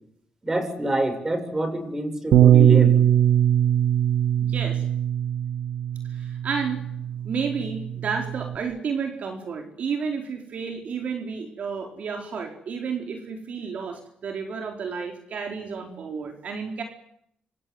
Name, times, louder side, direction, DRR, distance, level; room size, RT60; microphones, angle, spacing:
voice 1, 0.4-2.9, right 1 dB, 20° right, 8 dB, 7.1 m, -26 dB
Bass guitar, 2.3-8.6, right 10 dB, 90° right, 1.8 m, -21 dB
voice 2, 4.4-4.8 6.1-6.8 7.2-16.8, right 5 dB, 60° right, 4 dB, 4.5 m, -31 dB
27.5 x 27.0 x 8.0 m, 0.70 s
cardioid pair, 125°, 3 cm